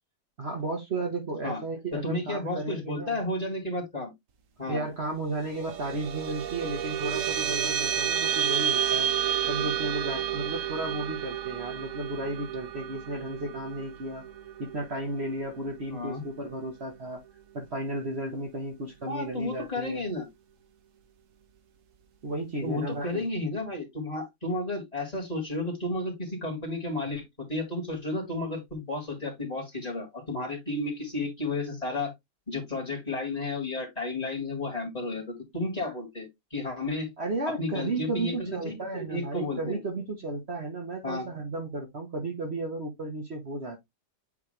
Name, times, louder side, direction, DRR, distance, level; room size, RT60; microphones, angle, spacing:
voice 1, 0.4-3.2 4.7-9.1 9.5-14.2 14.6-17.2 17.5-20.0 22.2-23.3 37.2-43.8, right 2 dB, 40° right, 1.5 m, -34 dB
voice 2, 1.9-4.1 4.6-4.8 15.9-16.2 19.0-20.3 22.6-27.2 27.5-32.1 32.5-37.1 37.6-39.8 41.0-41.3, left 2 dB, 25° left, 2.9 m, -32 dB
sound 1, 5.3-16.1, right 9 dB, 60° right, 1.1 m, -31 dB
8.5 x 3.5 x 3.3 m
omnidirectional pair, 1.7 m